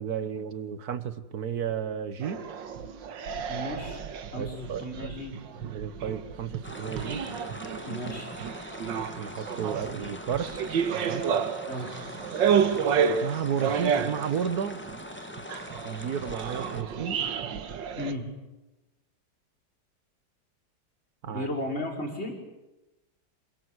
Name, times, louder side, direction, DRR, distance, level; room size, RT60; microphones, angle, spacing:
voice 1, 0.0-2.4 4.4-5.1 5.4-7.2 9.2-10.5 10.9-11.2 13.2-14.8 15.8-17.2 21.2-21.5, right 8 dB, 55° right, 13 dB, 1.7 m, -33 dB
sound 1, 2.2-18.1, right 7 dB, 75° right, 1.9 m, -30 dB
voice 2, 3.5-4.0 4.3-5.3 7.9-8.3 11.7-11.9 18.0-18.2 21.3-22.4, left 1 dB, 35° left, 1 dB, 5.5 m, -34 dB
sound 2, 6.6-16.8, left 1 dB, 5° left, 1.4 m, -42 dB
27.5 x 22.0 x 8.1 m, 1.0 s
omnidirectional pair, 2.0 m